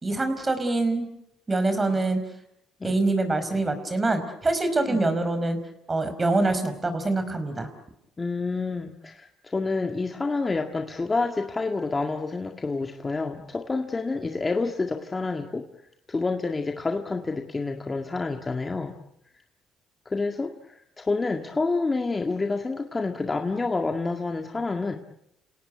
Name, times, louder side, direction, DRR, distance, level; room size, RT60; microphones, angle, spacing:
voice 1, 0.0-1.1 1.5-2.2 2.8-5.6 5.9-7.7, right 2 dB, 25° right, 9 dB, 4.9 m, -25 dB
voice 2, 8.2-15.7 16.1-19.0 20.1-25.0, left 3 dB, 25° left, 4 dB, 1.8 m, -28 dB
29.0 x 18.0 x 9.4 m, 0.79 s
supercardioid pair, 85°, 0 cm